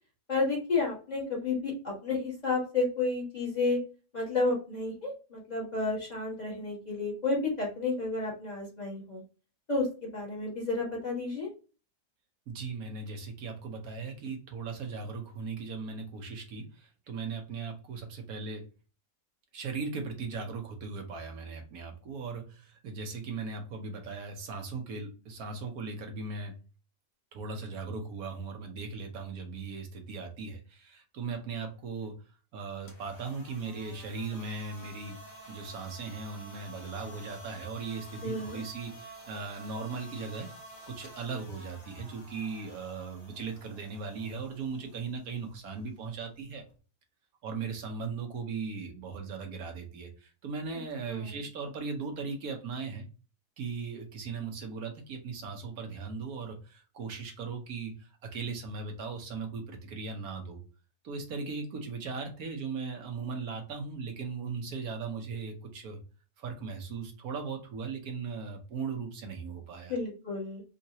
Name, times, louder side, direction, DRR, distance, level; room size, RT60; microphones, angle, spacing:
voice 1, 0.3-3.8 4.1-9.2 9.7-11.5 38.2-38.6 51.1-51.4 69.9-70.6, left 3 dB, 25° left, -5 dB, 1.5 m, -31 dB
voice 2, 12.5-18.6 19.5-26.6 27.3-32.1 32.5-35.2 35.5-40.5 40.8-46.6 47.4-53.0 53.6-60.6 61.0-66.0 66.4-70.0, right 4 dB, 70° right, 4 dB, 1.2 m, -38 dB
sound 1, 32.8-46.8, right 1 dB, 60° left, 1.9 m, -51 dB
3.9 x 2.4 x 2.7 m, 0.34 s
omnidirectional pair, 1.7 m